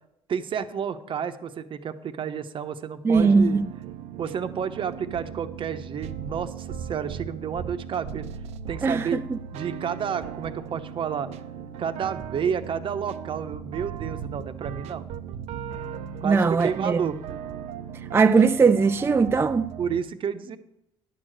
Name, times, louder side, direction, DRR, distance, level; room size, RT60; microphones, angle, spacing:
voice 1, 0.3-3.6 4.2-8.3 8.7-9.2 9.5-11.3 11.8-15.0 16.2-17.1 19.8-20.6, right 7 dB, 50° right, 0.9 m, -30 dB
voice 2, 3.0-3.7 8.8-9.4 16.2-17.0 18.1-19.7, right 4 dB, 20° right, 0.4 m, -20 dB
sound 1, 3.1-20.0, right 8 dB, 75° right, 0.6 m, -37 dB
10.5 x 4.8 x 7.7 m
supercardioid pair, 75°, 11 cm